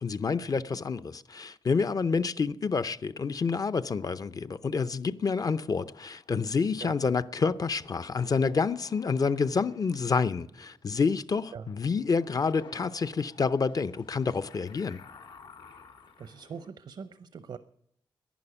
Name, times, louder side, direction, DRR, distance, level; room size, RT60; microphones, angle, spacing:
voice 1, 0.0-15.0, left 5 dB, 50° left, 0.6 m, -28 dB
sound 1, 3.1-3.9 5.3-6.7 7.2-11.2 11.6-16.7, left 4 dB, 90° left, 2.2 m, -54 dB
voice 2, 16.2-17.6, right 6 dB, 75° right, 0.7 m, -42 dB
11.0 x 10.5 x 9.9 m
wide cardioid pair, 85°, 8 cm